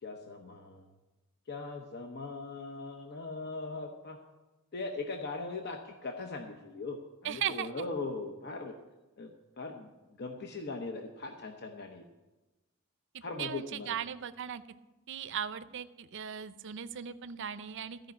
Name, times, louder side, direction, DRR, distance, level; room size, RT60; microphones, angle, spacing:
voice 1, 0.0-0.8 1.5-4.2 4.7-8.7 9.2-9.3 9.6-12.0 13.2-14.0, left 3 dB, 50° left, 3 dB, 0.8 m, -40 dB
voice 2, 7.2-7.7 13.1-14.6 15.1-18.0, right 8 dB, 60° right, 13 dB, 0.5 m, -37 dB
14.0 x 5.2 x 8.3 m, 1.1 s
head